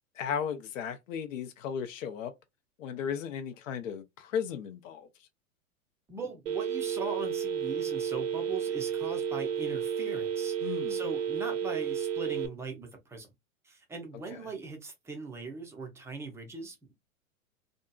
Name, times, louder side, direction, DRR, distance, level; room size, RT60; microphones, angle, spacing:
voice 1, 0.1-2.3 2.8-5.3 10.6-11.0 14.3-14.4, left 7 dB, 65° left, 0.6 m, -35 dB
voice 2, 6.1-13.3 13.6-16.9, right 4 dB, 5° right, 0.5 m, -40 dB
Telephone, 6.5-12.5, right 8 dB, 65° right, 0.7 m, -32 dB
2.7 x 2.4 x 2.2 m
hypercardioid pair, 100°, 42 cm